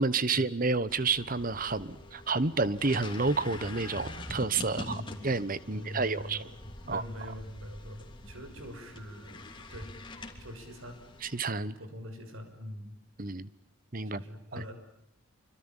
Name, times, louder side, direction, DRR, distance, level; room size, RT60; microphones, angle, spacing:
voice 1, 0.0-6.5 6.9-7.0 11.2-11.8 13.2-13.5 13.9-14.2 14.5-14.6, right 3 dB, 40° right, 17 dB, 1.1 m, -30 dB
sound 1, 0.9-11.4, left 2 dB, 20° left, 3.1 m, -45 dB
voice 2, 4.7-5.3 5.7-6.5 6.8-9.9 10.4-11.0 11.8-12.9 14.0-14.7, equal, 65° right, 7 dB, 6.3 m, -43 dB
26.5 x 25.0 x 8.9 m, 0.71 s
head